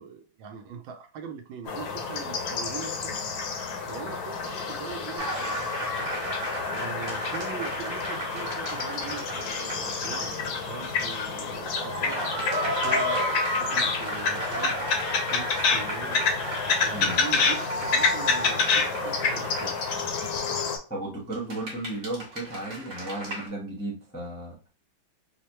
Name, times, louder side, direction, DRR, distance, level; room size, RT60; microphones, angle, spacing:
voice 1, 0.0-3.3 3.9-5.7 6.7-13.2 13.6-14.9 15.3-16.2 16.8-19.8, right 6 dB, 80° right, 5 dB, 1.4 m, -41 dB
sound 1, 1.6-20.8, left 5 dB, 65° left, 1.1 m, -29 dB
sound 2, 5.2-10.3 10.6-10.7 11.6-20.2 21.3-23.5, equal, 35° right, 1.2 m, -33 dB
voice 2, 16.9-17.2 20.9-24.7, right 2 dB, 10° left, -4 dB, 0.7 m, -34 dB
4.9 x 2.1 x 2.9 m, 0.34 s
omnidirectional pair, 2.2 m